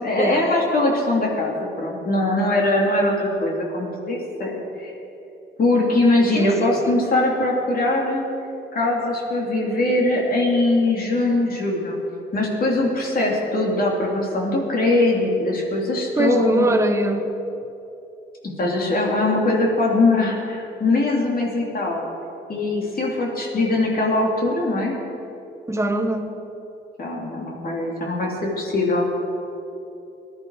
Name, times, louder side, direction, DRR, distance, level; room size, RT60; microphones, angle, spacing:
voice 1, 0.0-4.9 5.6-8.3 8.7-12.0 12.3-16.7 18.4-22.0 22.5-24.9 27.0-29.1, left 2 dB, 50° left, -1 dB, 2.9 m, -21 dB
voice 2, 6.4-7.0 16.2-17.3 25.7-26.3, right 2 dB, 15° right, 6 dB, 1.3 m, -23 dB
17.5 x 11.5 x 4.8 m, 2.8 s
cardioid pair, 90°, 20 cm